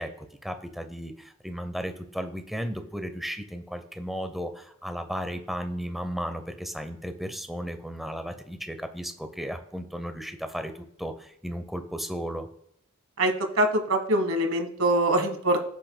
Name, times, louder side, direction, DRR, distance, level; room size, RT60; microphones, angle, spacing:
voice 1, 0.0-12.5, equal, ahead, 8 dB, 0.7 m, -35 dB
voice 2, 13.2-15.7, right 1 dB, 85° right, 5 dB, 1.4 m, -24 dB
15.0 x 6.2 x 2.2 m, 0.71 s
head